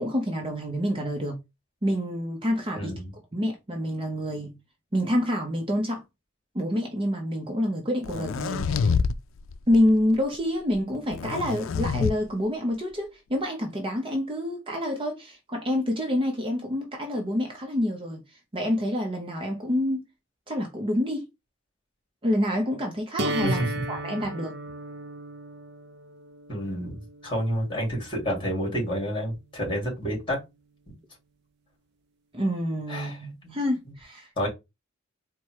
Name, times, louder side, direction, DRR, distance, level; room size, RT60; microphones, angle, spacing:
voice 1, 0.0-1.4 1.8-2.9 3.3-4.5 4.9-6.0 6.5-8.9 9.7-18.2 18.5-20.0 20.5-21.3 22.2-23.6 23.9-24.6 32.3-34.5, left 1 dB, 25° right, 0.8 m, -27 dB
voice 2, 2.7-3.1 23.4-23.7 26.5-30.4 32.9-33.2 33.4-33.5 34.4-34.5, equal, 25° left, 2.7 m, -29 dB
sound 1, 8.0-9.2 9.5-9.9 11.1-12.1, left 5 dB, 80° left, 0.4 m, -26 dB
sound 2, 23.2-29.2, right 2 dB, 55° right, 0.5 m, -36 dB
4.2 x 2.3 x 4.6 m
head